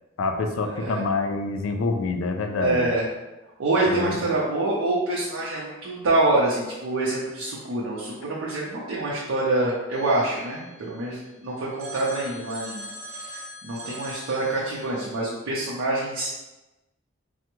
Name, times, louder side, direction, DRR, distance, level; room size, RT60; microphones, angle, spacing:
voice 1, 0.2-2.9 3.9-4.2, left 3 dB, 85° left, 5 dB, 0.4 m, -26 dB
voice 2, 2.6-3.0 3.6-12.8 13.1-16.3, right 2 dB, 90° right, -6 dB, 0.5 m, -26 dB
Telephone, 9.9-11.3 11.8-15.2, equal, 50° right, 0.7 m, -41 dB
3.3 x 2.0 x 3.0 m, 1.1 s
head